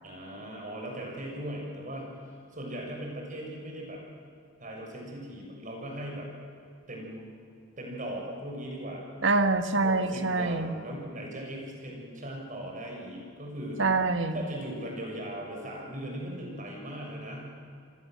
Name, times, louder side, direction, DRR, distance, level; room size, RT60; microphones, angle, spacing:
voice 1, 0.0-4.0 4.6-6.3 6.9-7.3 7.8-9.0 9.8-13.8 14.3-17.5, right 1 dB, 40° right, 0 dB, 6.7 m, -39 dB
voice 2, 9.2-10.8 13.8-14.4, right 3 dB, 65° right, 9 dB, 1.6 m, -25 dB
28.5 x 20.0 x 7.7 m, 2.4 s
head